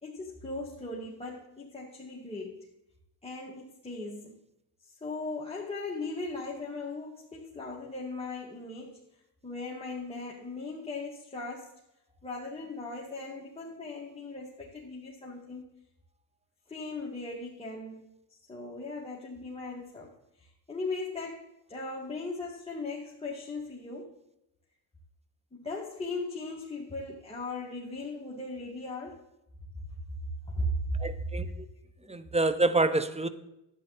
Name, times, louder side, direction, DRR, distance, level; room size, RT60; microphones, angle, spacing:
voice 1, 0.0-2.7 3.2-4.4 4.9-9.0 9.4-11.7 12.2-15.7 16.7-18.1 18.5-24.1 25.6-29.2 30.5-30.7 31.1-31.5, left 2 dB, 10° left, 2.3 m, -38 dB
voice 2, 31.0-31.5 32.1-33.3, right 2 dB, 15° right, 0.8 m, -27 dB
11.5 x 9.7 x 4.2 m
cardioid pair, 85°, 47 cm